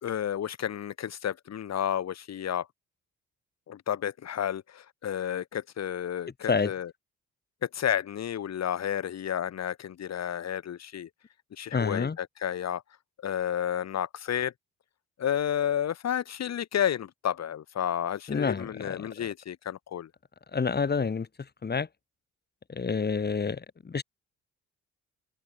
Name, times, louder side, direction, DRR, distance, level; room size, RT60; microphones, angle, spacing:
voice 1, 0.0-2.7 3.7-6.9 7.6-11.1 11.6-12.8 13.2-14.5 15.2-20.1, left 9 dB, 60° left, 3.1 m, -31 dB
voice 2, 11.7-12.2 18.3-19.1 20.5-21.3 21.6-21.9 22.7-24.0, left 5 dB, 35° left, 3.7 m, -28 dB
cardioid pair, 90°, 30 cm